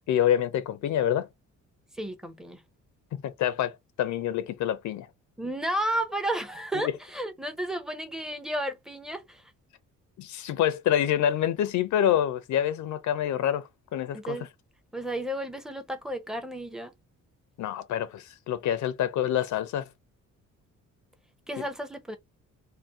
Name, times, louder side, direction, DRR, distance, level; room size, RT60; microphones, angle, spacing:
voice 1, 0.1-1.3 3.1-5.1 6.7-6.9 10.2-14.4 17.6-19.8, left 10 dB, 75° left, 0.6 m, -27 dB
voice 2, 1.9-2.6 5.4-9.5 14.1-14.5 14.9-16.9 21.5-22.2, right 1 dB, ahead, 0.7 m, -32 dB
2.6 x 2.1 x 3.6 m
cardioid pair, 90°, 30 cm